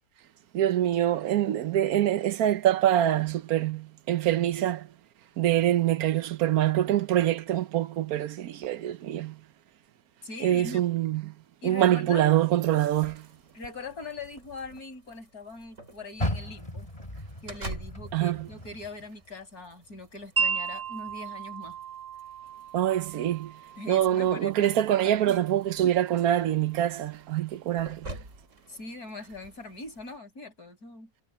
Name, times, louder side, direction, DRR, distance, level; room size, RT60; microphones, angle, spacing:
voice 1, 0.5-4.9 5.4-9.4 10.4-11.3 11.6-13.3 18.1-18.5 22.7-23.5 23.9-28.1, right 12 dB, 80° right, 1.2 m, -25 dB
voice 2, 10.2-10.8 11.6-12.3 13.5-16.9 17.4-21.8 23.8-24.9 25.3-25.5 25.8-25.9 28.7-31.1, left 3 dB, 85° left, 6.8 m, -41 dB
sound 1, 12.6-30.2, right 1 dB, 50° right, 6.0 m, -49 dB
Car, 16.1-19.4 19.8-21.2 21.7-21.8 22.4-22.5, left 1 dB, 25° left, 5.2 m, -36 dB
Wind chime, 20.4-26.4, right 6 dB, 25° right, 1.7 m, -35 dB
omnidirectional pair, 1.6 m